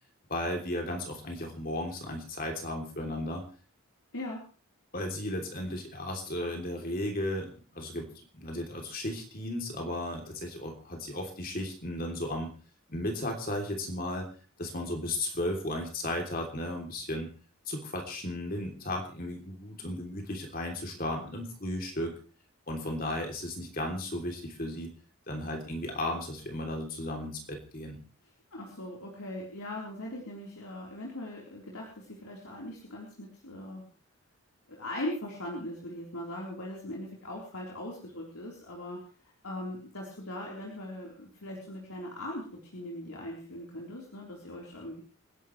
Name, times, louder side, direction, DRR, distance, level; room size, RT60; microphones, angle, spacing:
voice 1, 0.3-3.4 4.9-8.1 8.3-12.5 12.9-14.3 14.6-17.3 17.7-22.1 22.7-24.9 25.3-28.0, left 1 dB, 40° left, 2 dB, 3.2 m, -35 dB
voice 2, 28.5-33.8 34.7-39.0 39.4-45.0, left 1 dB, 85° left, -3 dB, 4.0 m, -40 dB
28.5 x 11.0 x 3.3 m, 0.39 s
head